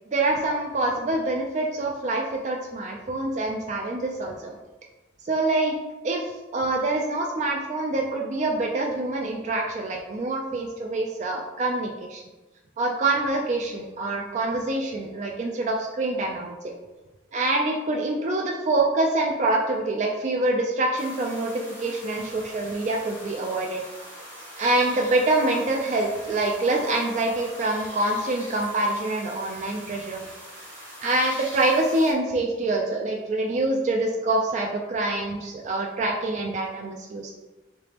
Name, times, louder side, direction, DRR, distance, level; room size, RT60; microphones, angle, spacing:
voice 1, 0.1-4.5 5.2-5.8 6.0-12.2 12.8-16.6 17.3-21.5 21.8-23.8 24.6-30.2 31.0-37.3, right 2 dB, 40° right, 1 dB, 0.3 m, -25 dB
sound 1, 21.0-32.1, equal, 15° right, 1.4 m, -43 dB
3.9 x 3.3 x 2.9 m, 1.1 s
head